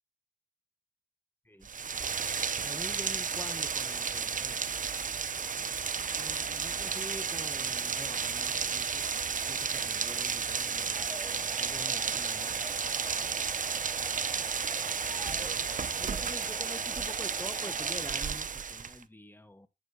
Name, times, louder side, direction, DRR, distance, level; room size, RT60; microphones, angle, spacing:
Rain, 1.6-19.0, right 6 dB, 50° right, 0.6 m, -33 dB
voice 1, 2.6-4.6 6.2-9.0 9.5-12.7 15.9-19.7, left 1 dB, 10° left, 1.2 m, -46 dB
sound 1, 10.9-17.9, equal, 20° right, 3.9 m, -46 dB
9.1 x 4.6 x 4.7 m
cardioid pair, 55°, 18 cm